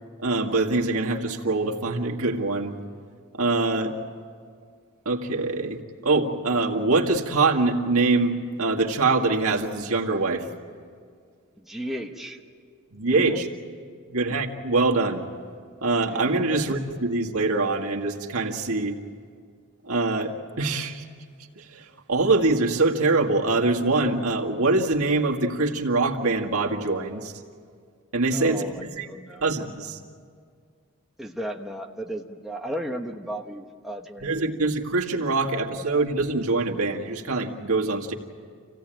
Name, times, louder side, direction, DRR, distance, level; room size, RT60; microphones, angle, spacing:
voice 1, 0.2-2.8 3.3-4.0 5.1-10.5 12.9-13.5 14.1-15.2 15.8-19.0 19.8-21.0 21.6-27.3 28.1-28.6 28.9-29.1 29.4-30.0 34.2-38.1, right 3 dB, 85° right, 0 dB, 1.9 m, -24 dB
voice 2, 11.6-12.4 13.1-13.4 16.1-16.3 28.3-29.4 31.2-34.5, equal, ahead, 1 dB, 1.0 m, -35 dB
27.5 x 16.5 x 9.0 m, 2.1 s
head